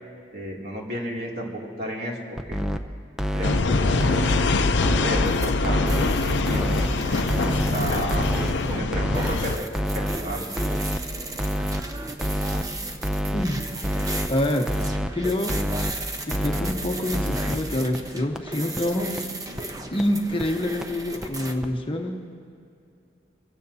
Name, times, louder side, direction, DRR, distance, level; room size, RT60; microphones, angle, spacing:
voice 1, 0.3-2.6 3.3-4.1 4.8-6.9 7.3-8.2 8.7-9.6 9.9-10.5, right 1 dB, 60° right, -2 dB, 2.7 m, -33 dB
sound 1, 2.4-2.8 3.2-3.6 4.0-4.4 4.8-5.2 5.6-6.1 6.5-6.9 7.3-7.7 8.1-8.5 8.9-9.3 9.7-10.2 10.6-11.0 11.4-11.8 12.2-12.6 13.0-13.5 13.8-14.3 14.7-15.1 15.5-15.9 16.3-16.7 17.1-17.5 17.9-18.0 18.4-18.5 18.8-18.9 19.2-19.3 19.6-19.7 20.0-20.1 20.4-20.5 20.8-20.9 21.2-21.3 21.6-21.7, equal, 5° right, 0.5 m, -26 dB
sound 2, 3.4-9.6, left 3 dB, 80° left, 0.6 m, -24 dB
sound 3, 5.3-21.5, right 2 dB, 20° right, 0.9 m, -35 dB
voice 2, 13.2-13.6 14.3-14.7 15.1-15.6 16.3-19.1 19.9-22.2, left 1 dB, 30° left, 3 dB, 1.0 m, -26 dB
24.0 x 16.0 x 2.8 m, 2.5 s
head